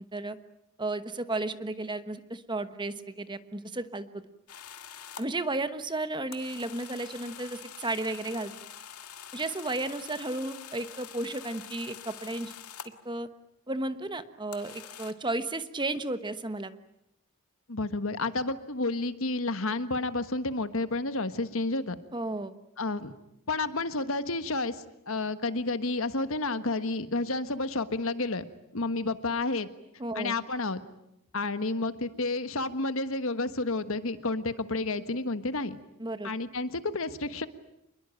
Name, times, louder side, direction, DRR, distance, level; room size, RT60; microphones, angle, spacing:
voice 1, 0.8-4.1 5.2-8.5 9.3-12.5 13.0-13.3 13.7-16.7 22.1-22.5 30.0-30.4 36.0-36.3, right 2 dB, 20° right, 11 dB, 1.1 m, -33 dB
sound 1, 4.5-5.3 6.3-13.0 14.5-15.1, left 8 dB, 90° left, 2.0 m, -45 dB
voice 2, 17.7-22.0 22.8-23.1 23.5-28.4 28.7-29.7 30.1-30.8 31.3-35.8 36.2-37.5, left 2 dB, 65° left, 11 dB, 1.5 m, -30 dB
27.0 x 21.5 x 9.0 m, 0.81 s
head